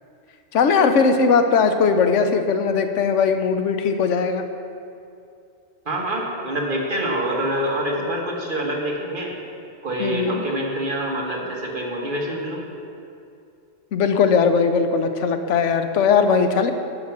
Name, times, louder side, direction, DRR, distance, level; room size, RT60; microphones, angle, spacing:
voice 1, 0.5-4.4 10.0-10.5 13.9-16.7, left 5 dB, 75° left, 8 dB, 1.0 m, -19 dB
voice 2, 5.8-9.3 9.8-12.6, right 1 dB, 45° right, -1 dB, 1.4 m, -26 dB
10.5 x 5.9 x 5.9 m, 2.5 s
omnidirectional pair, 1.3 m